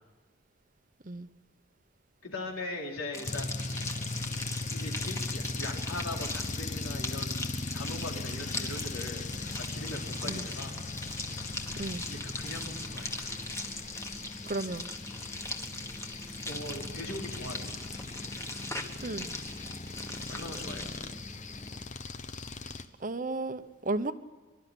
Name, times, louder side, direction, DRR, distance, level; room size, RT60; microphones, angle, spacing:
voice 1, 2.2-3.6 4.7-9.3 9.6-10.8 12.0-13.3 16.4-17.8 20.3-20.9, left 2 dB, 90° left, 0 dB, 4.2 m, -40 dB
sound 1, 3.1-21.8, left 2 dB, 15° left, 1.5 m, -40 dB
sound 2, 3.2-22.8, left 3 dB, 35° left, 0.9 m, -39 dB
voice 2, 14.5-14.9 19.0-19.3 23.0-24.1, right 2 dB, 40° right, 11 dB, 0.9 m, -34 dB
24.5 x 12.5 x 10.0 m, 1.3 s
head